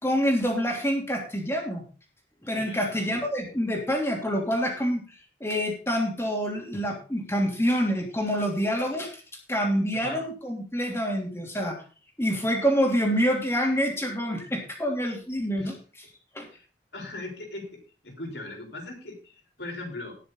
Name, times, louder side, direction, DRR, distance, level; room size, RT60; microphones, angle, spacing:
voice 1, 0.0-1.8 2.4-5.0 5.4-9.1 9.5-11.8 12.2-15.7 16.3-16.5, equal, 15° left, 1 dB, 3.2 m, -26 dB
voice 2, 2.5-3.1 9.9-10.2 15.6-15.7 16.5-16.7 16.9-20.1, left 2 dB, 70° left, 2 dB, 4.3 m, -39 dB
18.5 x 6.8 x 3.9 m, 0.35 s
head